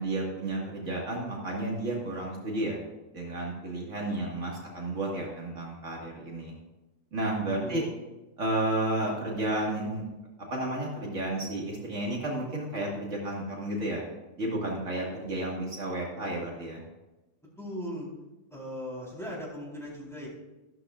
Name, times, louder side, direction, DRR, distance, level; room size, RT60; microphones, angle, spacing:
voice 1, 0.0-2.8 3.1-6.5 7.1-7.8 8.4-10.0 10.5-14.0 14.4-16.8, right 1 dB, 70° right, -3 dB, 2.4 m, -32 dB
voice 2, 7.6-8.0 17.4-18.1 18.5-20.3, equal, ahead, -5 dB, 4.0 m, -38 dB
14.0 x 12.5 x 2.5 m, 1.1 s
omnidirectional pair, 1.3 m